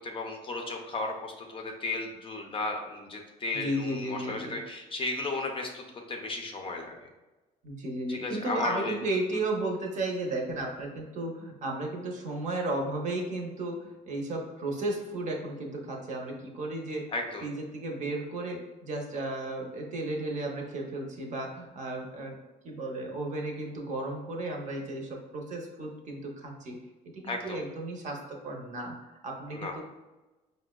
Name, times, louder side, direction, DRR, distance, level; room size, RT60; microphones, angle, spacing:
voice 1, 0.0-7.1 8.1-9.0 17.1-17.5 27.3-27.6 29.5-29.7, left 2 dB, 30° left, 2 dB, 0.5 m, -35 dB
voice 2, 3.5-4.6 7.6-17.0 17.4-22.4 22.6-26.8 27.1-29.8, right 2 dB, 45° right, 1 dB, 0.7 m, -34 dB
4.9 x 2.1 x 2.2 m, 1.1 s
cardioid pair, 110°, 17 cm